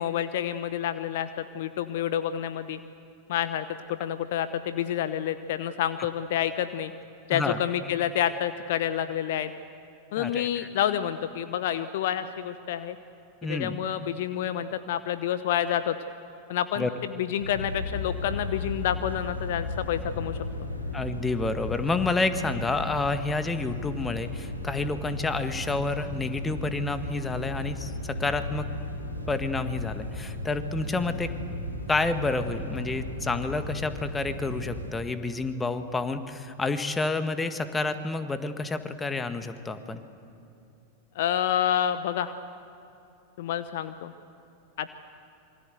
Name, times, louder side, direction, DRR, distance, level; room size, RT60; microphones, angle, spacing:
voice 1, 0.0-2.8 3.3-6.9 7.3-9.5 10.1-13.0 13.4-16.0 16.5-20.7 41.1-42.3 43.4-44.1 44.8-44.9, left 10 dB, 55° left, 12 dB, 0.9 m, -28 dB
voice 2, 10.2-10.7 13.4-13.7 16.8-16.9 20.9-28.7 29.3-31.3 31.9-40.0, left 3 dB, 15° left, 9 dB, 1.7 m, -29 dB
sound 1, 17.4-34.9, left 2 dB, 85° left, 4.2 m, -35 dB
26.5 x 24.5 x 8.0 m, 2.7 s
figure-of-eight pair, 90°, 0 cm